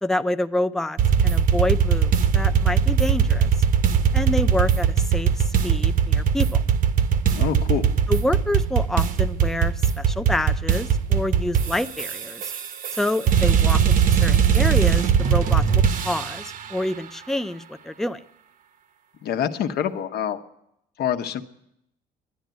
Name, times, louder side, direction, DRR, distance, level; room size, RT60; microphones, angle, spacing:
voice 1, 0.0-3.5 4.1-5.3 5.6-6.6 8.1-12.5 13.0-16.4 16.7-18.2, left 1 dB, ahead, 10 dB, 0.5 m, -27 dB
sound 1, 1.0-16.6, right 7 dB, 55° right, 0.9 m, -20 dB
voice 2, 7.3-7.8 19.2-20.4 21.0-21.4, left 9 dB, 70° left, 7 dB, 1.0 m, -26 dB
11.5 x 10.5 x 9.3 m, 0.78 s
cardioid pair, 110°, 17 cm